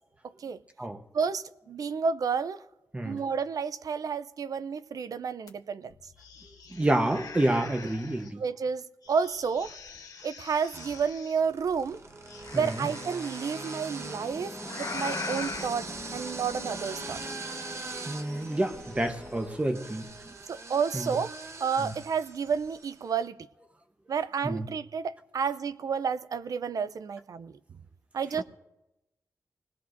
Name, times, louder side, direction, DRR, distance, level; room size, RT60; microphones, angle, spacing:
voice 1, 1.1-2.6 3.0-5.9 8.4-9.7 10.2-12.0 12.5-17.2 20.5-23.4 24.1-27.6 28.1-28.4, right 6 dB, 65° right, 0.5 m, -31 dB
Xenomorph Noise, 5.5-5.6 5.9-8.3 9.0-11.4 12.3-13.8 14.6-15.7, left 5 dB, 75° left, 1.2 m, -42 dB
voice 2, 6.7-8.4 18.1-20.0 20.9-21.1 24.4-24.6, right 1 dB, 20° right, 1.0 m, -28 dB
sound 1, 9.3-10.0 10.7-23.0, right 3 dB, 45° right, 0.9 m, -42 dB
sound 2, 12.0-20.4, equal, 10° left, 1.3 m, -44 dB
25.0 x 19.0 x 2.6 m
wide cardioid pair, 105°, 6 cm